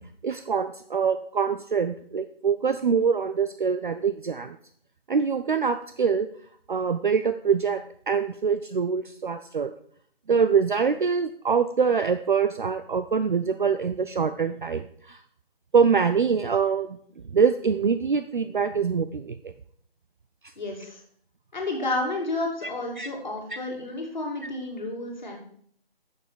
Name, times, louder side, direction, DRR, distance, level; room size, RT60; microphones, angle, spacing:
voice 1, 0.2-4.6 5.1-6.3 6.7-9.7 10.3-15.2 15.7-16.9 17.3-19.4 23.0-23.1, right 6 dB, 55° right, 10 dB, 0.4 m, -24 dB
voice 2, 20.6-21.0 21.5-25.4, left 2 dB, 50° left, 0 dB, 2.3 m, -31 dB
8.5 x 6.6 x 4.6 m, 0.62 s
figure-of-eight pair, 170°, 30 cm